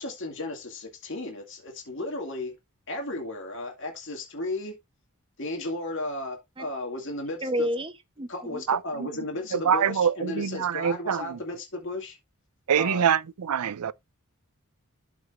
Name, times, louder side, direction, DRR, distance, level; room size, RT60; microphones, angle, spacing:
voice 1, 0.0-2.5 2.9-4.7 5.4-7.7 8.3-12.2 12.8-13.1, left 2 dB, 55° left, 2.2 m, -34 dB
voice 2, 7.4-8.6, equal, 25° right, 0.7 m, -30 dB
voice 3, 9.7-11.4 12.7-13.9, right 8 dB, 90° right, 0.5 m, -24 dB
13.0 x 4.9 x 2.5 m
head